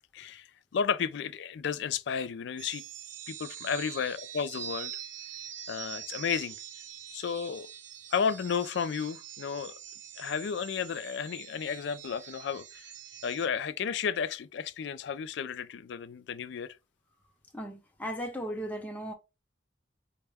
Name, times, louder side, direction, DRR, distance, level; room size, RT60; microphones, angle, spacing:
voice 1, 0.1-2.8 3.3-5.0 5.7-6.6 7.1-7.7 8.1-9.7 10.2-12.8 13.2-16.8, left 6 dB, 60° left, 0.3 m, -33 dB
sound 1, 2.6-13.5, right 10 dB, 70° right, 0.6 m, -44 dB
voice 2, 17.5-19.1, equal, 10° left, 0.7 m, -36 dB
4.3 x 2.1 x 3.4 m
head